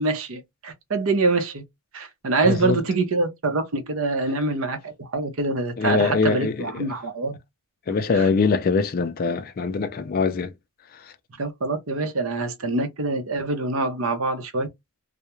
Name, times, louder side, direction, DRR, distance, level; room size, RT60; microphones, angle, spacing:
voice 1, 0.0-1.6 1.9-7.4 8.1-8.3 11.4-14.7, right 3 dB, 70° right, 0.7 m, -25 dB
voice 2, 2.4-2.8 5.8-6.9 7.9-10.5 10.9-11.1, left 4 dB, 45° left, 0.3 m, -23 dB
2.3 x 2.1 x 2.9 m
head